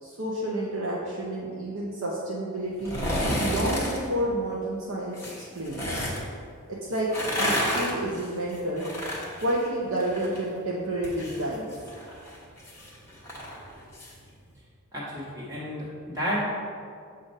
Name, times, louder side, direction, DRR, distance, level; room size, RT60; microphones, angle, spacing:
voice 1, 0.0-2.9 3.4-5.1 5.5-6.0 6.7-7.1 7.3-8.9 9.4-11.7, right 1 dB, 65° right, -4 dB, 0.7 m, -30 dB
sound 1, 2.8-4.0 5.1-6.2 7.0-10.4 10.7-14.1 14.5-14.6, equal, 10° left, 1.0 m, -31 dB
voice 2, 14.9-16.5, equal, 15° right, -8 dB, 1.3 m, -31 dB
7.3 x 2.5 x 5.3 m, 2.2 s
head